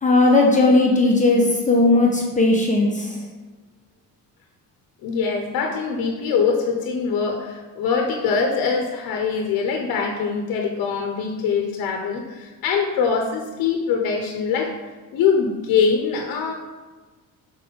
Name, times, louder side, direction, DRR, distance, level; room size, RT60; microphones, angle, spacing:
voice 1, 0.0-3.2, left 2 dB, 20° left, -1 dB, 0.9 m, -17 dB
voice 2, 5.0-14.7 15.1-16.5, left 5 dB, 75° left, 3 dB, 0.9 m, -23 dB
4.8 x 4.2 x 5.3 m, 1.3 s
cardioid pair, 125°, 36 cm